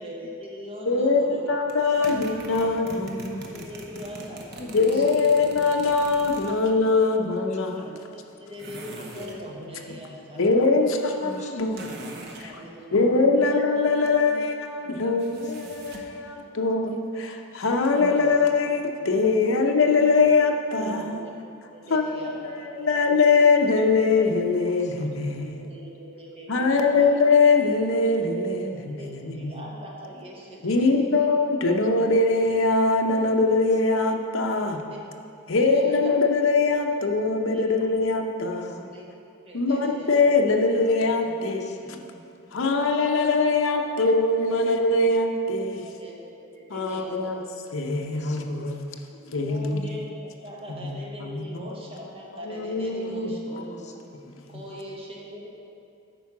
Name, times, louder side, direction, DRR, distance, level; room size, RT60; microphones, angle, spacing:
voice 1, 0.0-1.5 2.0-2.1 3.5-5.3 7.0-7.1 7.8-10.6 12.4-13.5 19.5-19.6 21.2-21.3 21.7-22.8 25.6-27.1 28.8-31.3 31.7-31.8 34.9-35.0 35.5-36.1 37.5-37.9 38.9-39.1 39.4-40.2 43.4-43.8 44.3-44.6 45.8-47.3 47.7-47.8 49.4-53.6 54.5-55.5, equal, 25° right, -3 dB, 1.2 m, -42 dB
voice 2, 0.9-3.7 4.7-7.9 9.2-9.4 10.4-12.0 12.4-12.5 12.9-21.2 21.9-25.7 26.5-29.7 30.6-34.8 35.5-38.8 39.5-41.8 42.5-45.8 46.7-47.4 47.7-49.0 49.3-49.8 50.8-50.9 51.2-51.6 52.4-53.6, left 3 dB, 70° left, 3 dB, 0.7 m, -22 dB
sound 1, 1.7-6.7 8.6-9.4 11.7-12.5 15.2-16.2, right 2 dB, 50° right, 0.8 m, -42 dB
voice 3, 3.9-5.0 7.3-7.4 7.7-8.0 11.2-14.4 14.8-15.2 18.0-18.5 19.2-19.3 20.7-21.2 23.1-23.3 24.4-25.1 36.2-36.3 38.6-38.9 41.2-42.2 43.3-43.4 48.2-48.7 49.2-49.8 53.5-54.4, equal, 35° left, 1 dB, 0.7 m, -44 dB
9.0 x 4.6 x 6.0 m, 2.6 s
head